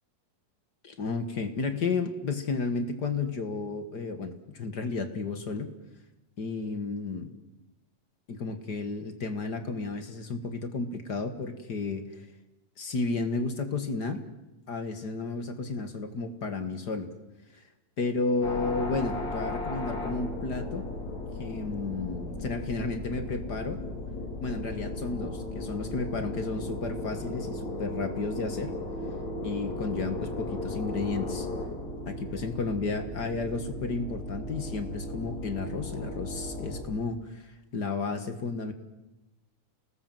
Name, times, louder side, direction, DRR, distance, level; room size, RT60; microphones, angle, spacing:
voice 1, 0.8-5.7 6.4-7.3 8.3-12.2 12.8-14.3 14.7-17.1 17.5-17.6 18.0-20.9 21.4-23.8 24.4-28.8 29.4-31.5 32.1-38.7, left 3 dB, 40° left, 8 dB, 1.8 m, -32 dB
sound 1, 18.4-36.8, left 2 dB, 65° left, 5.4 m, -36 dB
30.0 x 19.5 x 7.8 m, 1.0 s
omnidirectional pair, 3.3 m